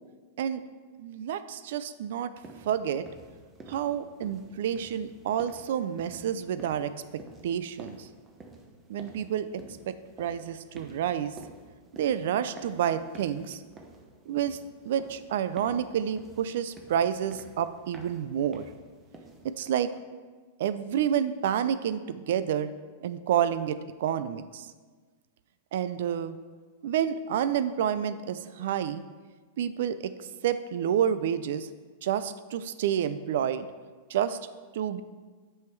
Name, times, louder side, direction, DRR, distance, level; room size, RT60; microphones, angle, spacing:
voice 1, 1.0-2.3 2.6-3.1 3.7-8.1 8.9-11.3 12.0-13.6 14.3-14.6 14.8-18.7 19.4-19.9 20.6-22.7 23.0-24.7 25.7-26.4 26.8-29.0 29.6-30.1 30.4-31.7 32.0-33.7 34.1-34.4 34.7-35.0, right 9 dB, 70° right, 13 dB, 0.4 m, -29 dB
sound 1, 2.4-19.7, right 3 dB, 20° right, 0.9 m, -51 dB
7.4 x 5.6 x 4.6 m, 1.4 s
hypercardioid pair, 130°, 0 cm